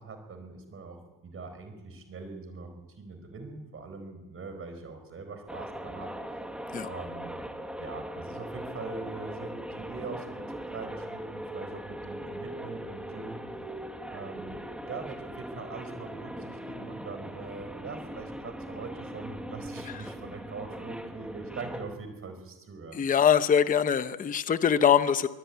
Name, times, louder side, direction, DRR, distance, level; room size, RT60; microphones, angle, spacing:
voice 1, 0.0-2.7 3.0-6.1 6.8-7.4 7.8-10.5 10.7-13.4 14.1-14.6 14.9-23.0, right 4 dB, 25° right, 7 dB, 4.4 m, -42 dB
sound 1, 5.5-22.0, right 1 dB, ahead, 1.4 m, -40 dB
voice 2, 22.9-25.3, left 8 dB, 15° left, 11 dB, 0.7 m, -23 dB
24.0 x 17.5 x 9.3 m, 1.2 s
cardioid pair, 160°, 48 cm